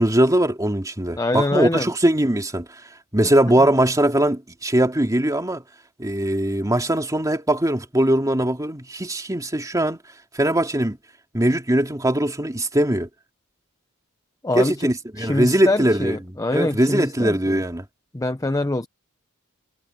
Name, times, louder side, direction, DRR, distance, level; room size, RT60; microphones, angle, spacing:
voice 1, 0.0-2.8 3.1-5.6 6.0-10.0 10.3-11.0 11.3-13.1 14.5-17.8, right 1 dB, 15° right, 2.4 m, -21 dB
voice 2, 1.2-1.9 14.4-14.9 15.2-17.6 18.1-18.9, left 2 dB, 15° left, 0.7 m, -24 dB
head